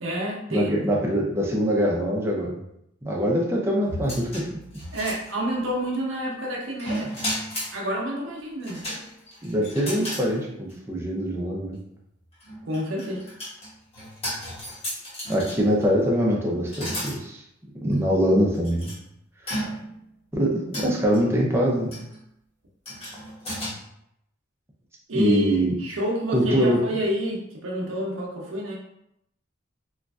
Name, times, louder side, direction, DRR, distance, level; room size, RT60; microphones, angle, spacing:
voice 1, 0.0-0.7 4.9-7.1 7.7-8.8 12.6-13.2 25.1-28.8, equal, 75° right, -1 dB, 0.7 m, -29 dB
voice 2, 0.5-2.6 3.0-4.5 9.4-11.8 15.3-17.4 17.8-18.9 20.3-21.9 25.1-25.8 26.3-26.8, equal, 15° right, -2 dB, 0.5 m, -23 dB
sound 1, 3.9-5.7 6.8-7.8 8.6-10.3 10.7-10.8 12.3-15.8 16.7-17.2 17.9-18.0 18.6-19.0 19.5-20.0 20.7-21.2 21.9-22.2 22.9-23.7, equal, 30° left, 1.0 m, -34 dB
3.0 x 2.5 x 2.3 m, 0.78 s
head